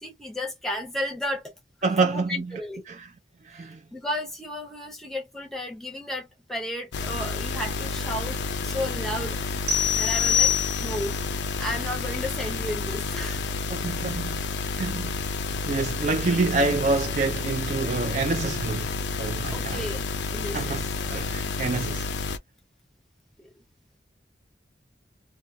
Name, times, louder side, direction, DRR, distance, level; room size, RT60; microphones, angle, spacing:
voice 1, 0.0-1.5 2.0-2.8 3.9-9.6 9.9-10.5 10.8-11.2 11.6-13.4 19.5-20.7, left 1 dB, ahead, 0.6 m, -33 dB
voice 2, 1.8-3.1 3.4-3.8 13.7-14.4 14.8-15.2 15.7-19.9 20.5-22.1, right 3 dB, 40° right, 0.3 m, -27 dB
sound 1, 6.9-22.4, left 4 dB, 85° left, 0.4 m, -30 dB
sound 2, 9.7-11.2, left 9 dB, 75° right, 1.2 m, -24 dB
2.2 x 2.2 x 2.6 m
head